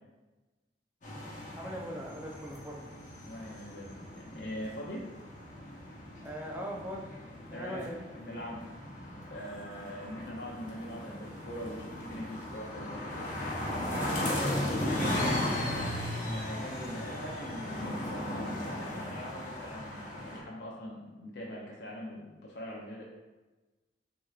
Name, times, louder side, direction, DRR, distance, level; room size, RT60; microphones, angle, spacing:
sound 1, 1.0-20.4, left 1 dB, 45° left, 1.0 m, -37 dB
voice 1, 1.6-2.8 6.2-7.1 7.5-8.0 13.9-15.5, equal, 10° right, -2 dB, 0.6 m, -40 dB
voice 2, 3.2-5.0 7.5-7.9 8.2-8.7 9.3-13.0 16.2-23.0, equal, 65° left, -3 dB, 0.7 m, -42 dB
6.2 x 3.0 x 2.4 m, 1.2 s
head